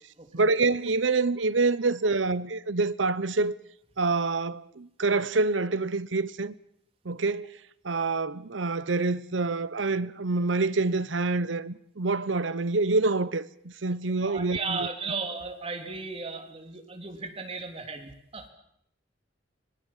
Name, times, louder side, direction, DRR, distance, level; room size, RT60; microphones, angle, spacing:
voice 1, 0.3-3.5 4.0-6.5 7.0-7.5 7.8-14.9, right 3 dB, 80° right, 0.9 m, -26 dB
voice 2, 14.1-18.5, right 4 dB, 30° right, 3.4 m, -35 dB
24.5 x 20.5 x 7.4 m
head